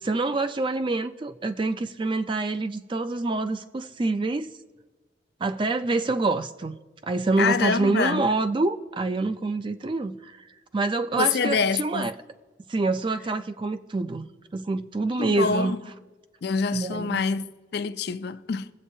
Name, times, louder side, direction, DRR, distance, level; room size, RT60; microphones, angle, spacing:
voice 1, 0.0-4.5 5.4-10.4 10.7-12.1 12.7-15.8 16.7-17.2, right 3 dB, 25° right, 0.4 m, -26 dB
voice 2, 7.4-8.2 11.2-12.1 15.2-15.8 16.4-17.5 17.7-18.7, left 5 dB, 60° left, 0.4 m, -26 dB
22.5 x 7.6 x 2.7 m
head